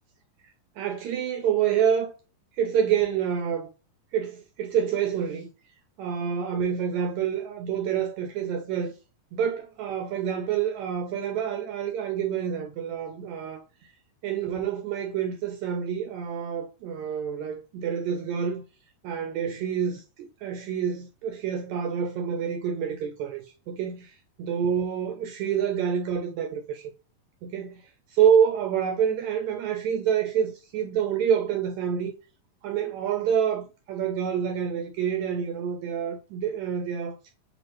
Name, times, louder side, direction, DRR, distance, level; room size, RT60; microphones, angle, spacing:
voice 1, 0.8-2.1 2.6-3.7 4.1-5.5 6.0-8.9 9.3-13.6 14.2-18.6 19.0-26.9 27.4-27.8 28.1-32.1 32.6-37.3, right 8 dB, 85° right, 1.6 m, -27 dB
6.1 x 2.5 x 3.0 m
omnidirectional pair, 3.9 m